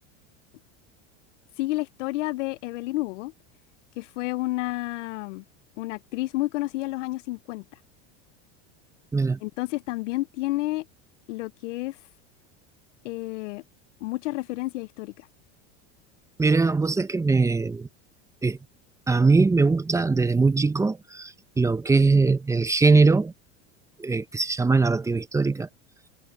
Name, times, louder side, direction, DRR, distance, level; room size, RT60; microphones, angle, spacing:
voice 1, 1.6-3.3 4.0-5.4 5.8-7.6 9.4-10.9 11.3-12.0 13.0-13.6 14.0-15.3, left 19 dB, 90° left, 0.6 m, -30 dB
voice 2, 16.4-17.9 18.4-18.6 19.1-23.3 24.0-25.7, right 4 dB, 10° right, 0.6 m, -21 dB
supercardioid pair, 135°, 36 cm